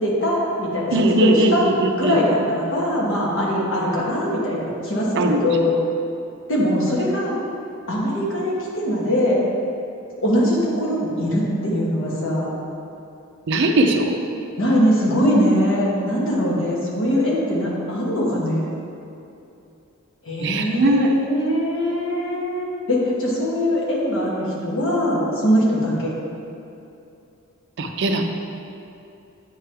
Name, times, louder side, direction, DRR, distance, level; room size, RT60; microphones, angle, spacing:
voice 1, 0.0-1.6 2.0-5.8 6.5-7.3 7.9-9.4 10.2-12.5 14.6-18.6 20.2-26.1, equal, 60° left, -4 dB, 1.3 m, -21 dB
voice 2, 0.9-2.2 5.2-5.8 13.5-14.2 20.4-21.2 27.8-28.2, right 1 dB, 55° right, 4 dB, 0.4 m, -20 dB
9.1 x 3.5 x 3.3 m, 2.7 s
head